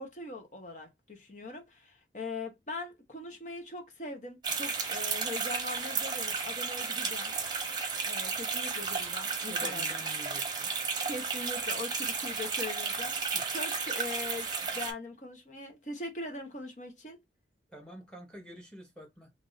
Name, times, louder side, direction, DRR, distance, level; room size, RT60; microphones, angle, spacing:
voice 1, 0.0-7.3 8.0-9.9 11.1-14.5 14.7-17.2, left 2 dB, 45° left, 1.0 m, -41 dB
sound 1, 4.4-14.9, right 5 dB, 25° right, 0.8 m, -33 dB
voice 2, 9.5-10.7 13.3-13.4 17.7-19.3, equal, 5° left, 1.1 m, -47 dB
3.1 x 2.7 x 3.9 m
head